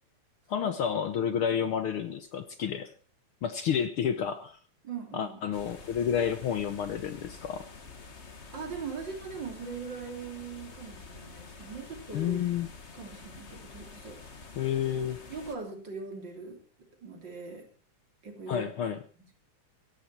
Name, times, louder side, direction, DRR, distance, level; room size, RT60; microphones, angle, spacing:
voice 1, 0.5-2.9 3.4-4.6 5.1-7.6 12.1-12.7 14.6-15.2 18.5-19.0, left 8 dB, 65° left, 11 dB, 1.3 m, -30 dB
voice 2, 4.8-5.4 8.5-12.4 12.9-14.4 14.9-16.6 17.0-17.7 18.2-18.7, right 5 dB, 40° right, 3 dB, 3.8 m, -41 dB
sound 1, 5.5-15.6, left 4 dB, 30° left, 1.4 m, -48 dB
17.5 x 15.5 x 4.5 m, 0.41 s
omnidirectional pair, 3.3 m